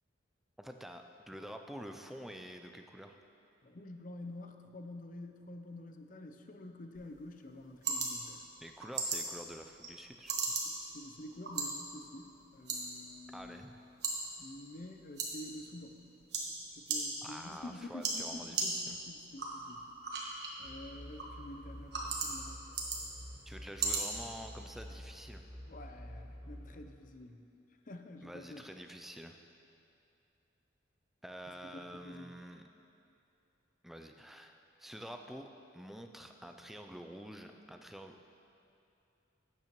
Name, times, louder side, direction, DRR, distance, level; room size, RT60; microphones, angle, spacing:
voice 1, 0.6-3.2 8.6-10.6 13.3-13.7 17.2-19.0 23.5-25.4 28.2-29.4 31.2-32.6 33.8-38.2, equal, ahead, 5 dB, 0.4 m, -48 dB
voice 2, 3.6-8.4 10.9-13.6 14.4-16.0 16.8-19.8 20.6-22.6 25.7-27.4 27.9-28.6 31.7-32.3, left 1 dB, 45° left, 5 dB, 0.5 m, -48 dB
sound 1, 6.9-24.9, right 3 dB, 60° right, 1.3 m, -40 dB
sound 2, 20.6-26.8, equal, 30° right, 1.6 m, -49 dB
12.0 x 8.7 x 3.0 m, 2.7 s
head